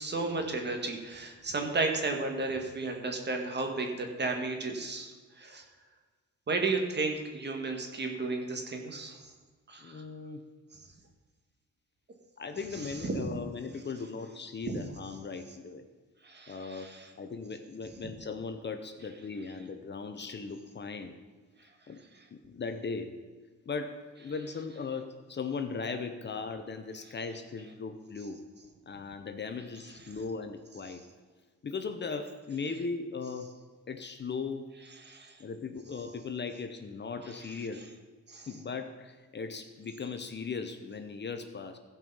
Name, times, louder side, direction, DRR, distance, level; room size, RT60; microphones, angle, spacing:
voice 1, 0.0-5.6 6.5-9.2 9.7-10.0 12.7-13.1 14.7-14.8 16.2-17.1 35.0-35.3 37.3-37.4 38.3-38.5, right 3 dB, 35° right, 3 dB, 1.9 m, -33 dB
voice 2, 9.8-10.4 12.4-15.8 16.5-21.2 21.9-22.0 22.3-23.1 23.7-28.4 28.9-31.0 31.6-33.5 33.9-34.7 35.4-37.8 38.5-41.8, left 4 dB, 35° left, 7 dB, 0.9 m, -38 dB
15.5 x 5.4 x 5.6 m, 1.4 s
cardioid pair, 90°, 30 cm